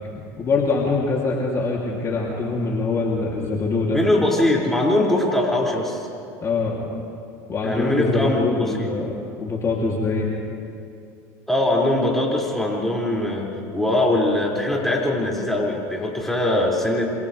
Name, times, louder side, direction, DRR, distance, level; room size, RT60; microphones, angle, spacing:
voice 1, 0.0-4.0 6.4-6.9 7.5-10.3, left 3 dB, 35° left, -3 dB, 3.0 m, -24 dB
voice 2, 3.9-6.1 7.6-8.9 11.5-17.1, left 1 dB, 5° left, -4 dB, 5.7 m, -22 dB
28.0 x 27.5 x 3.4 m, 2.5 s
hypercardioid pair, 90°, 9 cm